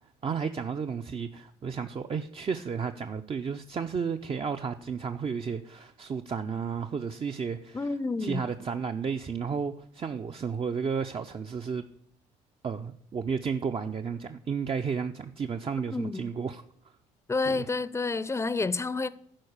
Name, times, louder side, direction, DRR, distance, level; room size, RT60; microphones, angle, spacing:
voice 1, 0.2-7.9 8.2-11.8 12.6-16.6 17.5-17.7, right 6 dB, 30° right, 0.5 m, -32 dB
voice 2, 7.7-8.5 15.9-16.2 17.3-19.1, left 3 dB, 15° left, 0.6 m, -29 dB
11.5 x 4.6 x 6.5 m
hypercardioid pair, 65°, 17 cm